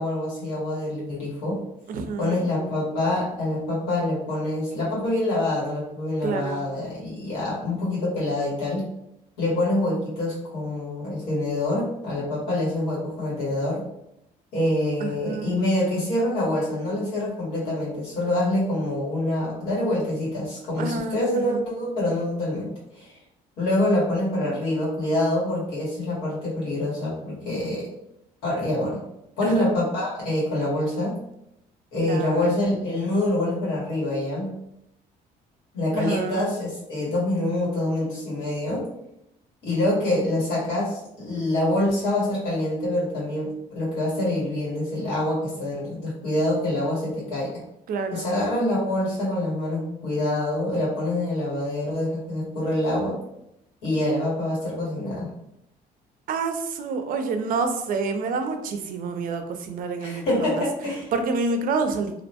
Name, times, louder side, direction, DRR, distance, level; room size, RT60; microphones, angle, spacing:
voice 1, 0.0-1.6 2.2-8.9 9.4-13.8 14.5-23.1 23.6-27.9 28.4-29.0 29.4-31.2 31.9-34.6 35.7-38.9 39.6-47.6 48.1-53.2 53.8-55.3 60.0-61.1, left 1 dB, 85° left, -7 dB, 1.4 m, -26 dB
voice 2, 1.9-2.5 6.2-6.6 15.0-15.6 20.8-21.6 29.4-29.7 32.1-32.5 35.9-36.5 47.9-48.3 56.3-60.6 61.1-62.2, right 4 dB, 55° right, 7 dB, 0.4 m, -28 dB
2.5 x 2.1 x 2.8 m, 0.81 s
cardioid pair, 110°, 17 cm